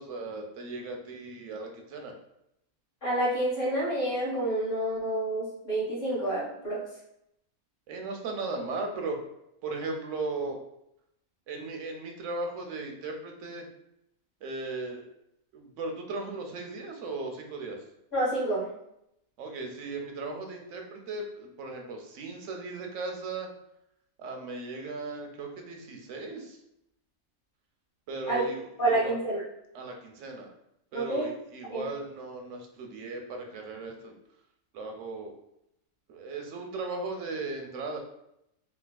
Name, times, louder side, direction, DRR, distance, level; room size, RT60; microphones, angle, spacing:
voice 1, 0.0-2.1 7.9-9.2 9.6-10.6 11.5-13.7 14.4-15.1 15.5-17.8 19.4-23.5 24.2-26.6 28.1-29.1 29.7-30.5 30.9-34.1 34.7-35.3 36.1-38.0, right 3 dB, 70° right, 3 dB, 0.9 m, -37 dB
voice 2, 3.0-6.8 18.1-18.7 28.3-28.5 28.8-29.4 30.9-31.3 31.7-31.9, right 1 dB, 40° left, -8 dB, 1.5 m, -28 dB
3.3 x 2.8 x 2.2 m, 0.79 s
omnidirectional pair, 1.4 m